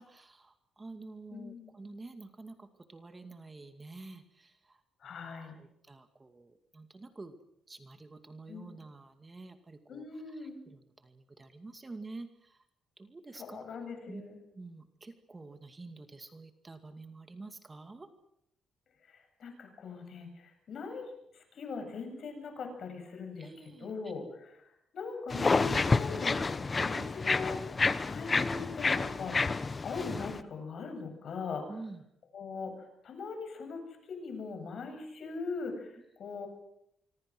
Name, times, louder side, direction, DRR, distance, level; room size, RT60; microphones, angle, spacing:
voice 1, 0.0-5.1 5.6-7.4 7.7-12.7 13.0-13.7 14.1-14.2 14.5-18.1 23.4-24.1 31.7-32.0, right 3 dB, 25° right, 7 dB, 2.4 m, -48 dB
voice 2, 1.3-1.7 5.0-5.6 8.5-8.7 9.9-10.6 13.4-14.4 19.0-23.5 23.8-31.6 32.3-33.8 34.1-36.5, left 4 dB, 55° left, 6 dB, 8.0 m, -41 dB
sound 1, 25.3-30.4, left 4 dB, 25° left, 1.1 m, -29 dB
25.5 x 25.0 x 6.3 m, 0.77 s
cardioid pair, 100°, 0 cm